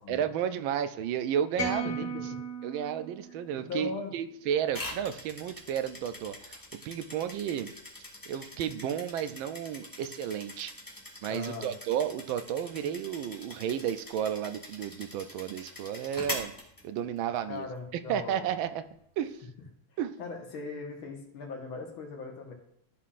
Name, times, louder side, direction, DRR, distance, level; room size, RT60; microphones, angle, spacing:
voice 1, 0.1-2.0 2.6-7.7 8.3-10.7 11.2-16.5 16.8-17.7 18.1-18.8 19.2-19.4 20.0-20.1, right 9 dB, 80° right, 10 dB, 1.3 m, -32 dB
sound 1, 1.6-3.9, right 2 dB, 35° left, 2.8 m, -36 dB
voice 2, 1.8-2.4 3.6-4.1 11.3-11.7 17.5-18.5 20.2-22.5, left 4 dB, 85° left, 1 dB, 2.2 m, -39 dB
sound 2, 4.7-17.4, left 1 dB, 10° left, 1.4 m, -43 dB
14.0 x 5.6 x 2.5 m, 0.74 s
omnidirectional pair, 2.2 m